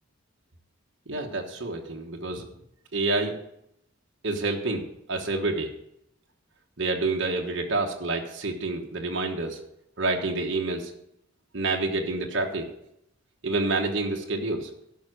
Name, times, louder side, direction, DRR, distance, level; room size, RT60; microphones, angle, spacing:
voice 1, 1.1-2.4 2.9-3.4 4.2-5.7 6.8-9.6 10.0-10.9 11.5-12.7 13.4-14.7, right 2 dB, 60° right, 1 dB, 1.3 m, -28 dB
12.5 x 5.7 x 6.4 m, 0.78 s
head